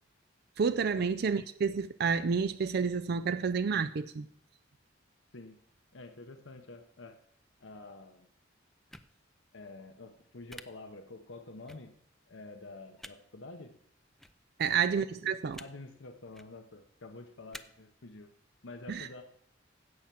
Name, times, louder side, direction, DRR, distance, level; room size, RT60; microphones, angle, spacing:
voice 1, 0.6-4.3 14.6-15.6 18.9-19.2, right 6 dB, 55° right, 13 dB, 0.4 m, -30 dB
voice 2, 5.9-7.2 7.6-8.3 9.5-11.9 12.3-13.7 14.6-14.9 15.6-18.3 18.6-19.2, left 2 dB, 75° left, 6 dB, 0.9 m, -48 dB
sound 1, 8.9-9.1 10.5-10.6 11.7-11.8 13.0-13.1 14.2-14.3 15.5-15.7 16.3-16.5 17.5-17.6, left 1 dB, ahead, 0.5 m, -47 dB
16.0 x 5.8 x 7.5 m, 0.71 s
head